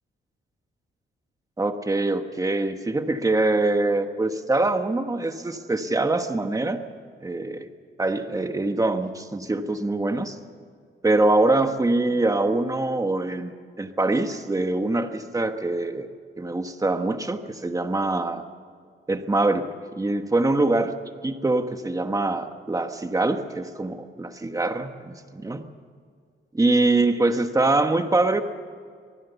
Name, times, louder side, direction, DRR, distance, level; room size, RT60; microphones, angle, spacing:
voice 1, 1.6-6.8 7.2-7.7 8.0-10.4 11.0-16.1 16.4-18.4 19.1-19.7 20.0-20.9 21.2-25.7 26.5-28.4, right 2 dB, 15° right, 7 dB, 1.3 m, -24 dB
24.5 x 19.5 x 7.0 m, 2.1 s
wide cardioid pair, 140°, 21 cm